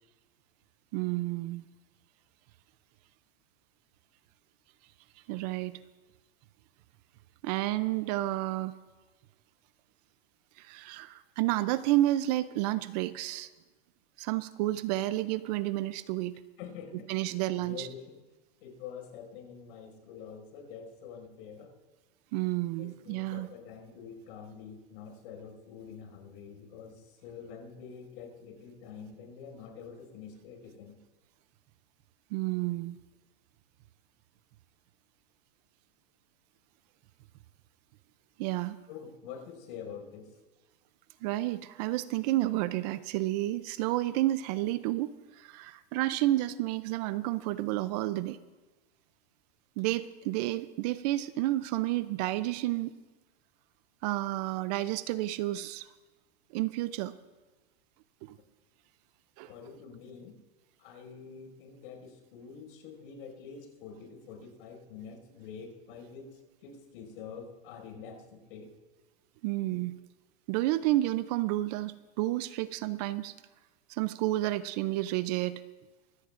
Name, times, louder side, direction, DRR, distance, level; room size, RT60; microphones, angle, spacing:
voice 1, 0.9-1.7 5.3-5.8 7.4-8.7 10.6-13.5 14.2-16.3 17.1-17.9 22.3-23.5 32.3-33.0 38.4-38.8 41.2-48.4 49.8-52.9 54.0-55.9 56.5-57.1 58.2-58.4 59.4-59.5 69.4-69.9 70.5-73.3 73.9-75.6, right 16 dB, 40° right, 15 dB, 0.5 m, -30 dB
voice 2, 16.6-18.2 18.6-21.7 22.8-31.0 38.9-40.3 59.5-60.4 60.8-68.7, left 6 dB, 60° left, 2 dB, 5.6 m, -46 dB
24.0 x 17.0 x 2.5 m, 1.2 s
supercardioid pair, 140°, 32 cm